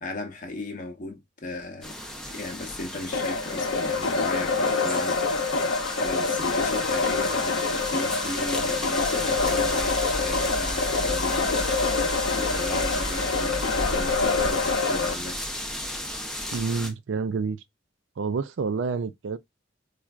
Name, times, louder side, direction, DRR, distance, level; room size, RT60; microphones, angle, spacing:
voice 1, 0.0-2.0 2.3-5.3 6.0-11.8 12.3-15.4, left 2 dB, 40° left, 0.8 m, -36 dB
sound 1, 1.8-16.9, left 1 dB, 5° left, 0.6 m, -34 dB
sound 2, 3.1-15.1, left 4 dB, 85° left, 0.6 m, -26 dB
sound 3, 9.3-14.5, equal, 35° right, 1.2 m, -35 dB
voice 2, 16.5-17.6 18.2-19.4, right 4 dB, 70° right, 0.4 m, -28 dB
4.3 x 2.4 x 2.4 m
head